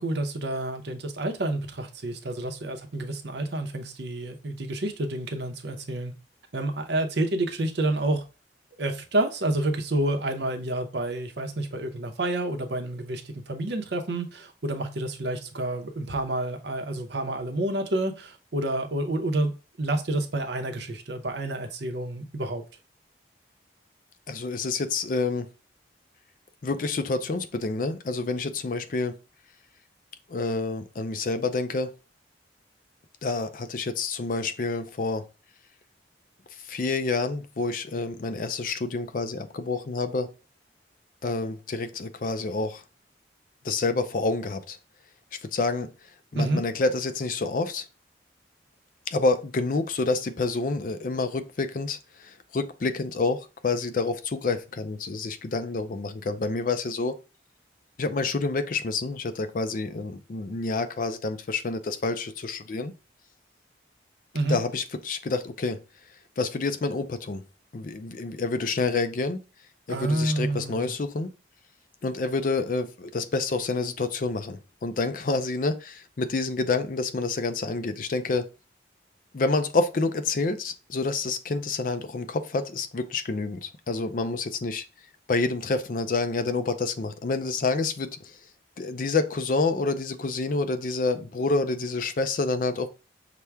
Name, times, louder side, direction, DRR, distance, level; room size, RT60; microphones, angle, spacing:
voice 1, 0.0-6.1 6.5-8.2 8.8-19.5 19.8-22.6 46.4-46.6 64.3-64.6 69.9-70.9, right 1 dB, 65° right, 0.7 m, -29 dB
voice 2, 24.3-25.5 26.6-29.2 30.3-31.9 33.2-35.3 36.5-40.3 41.2-42.8 43.6-44.8 45.4-45.9 46.3-47.9 49.1-57.1 58.0-62.9 64.5-65.8 66.4-67.4 67.7-69.4 69.9-71.3 72.0-78.5 79.3-84.8 85.3-88.4 88.8-92.9, left 3 dB, 45° left, 0.4 m, -28 dB
5.9 x 2.2 x 3.3 m
head